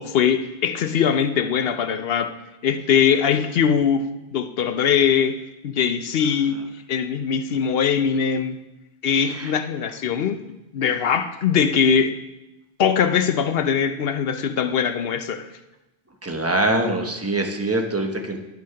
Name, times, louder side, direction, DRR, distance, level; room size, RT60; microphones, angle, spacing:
voice 1, 0.0-2.3 2.6-4.1 4.3-5.4 5.6-6.6 6.9-8.6 9.0-10.4 10.7-12.2 12.8-15.5, left 7 dB, 70° left, 10 dB, 0.8 m, -21 dB
voice 2, 9.1-9.5 16.2-18.4, right 2 dB, 15° right, 3 dB, 0.9 m, -24 dB
11.5 x 6.2 x 5.7 m, 0.98 s
omnidirectional pair, 1.0 m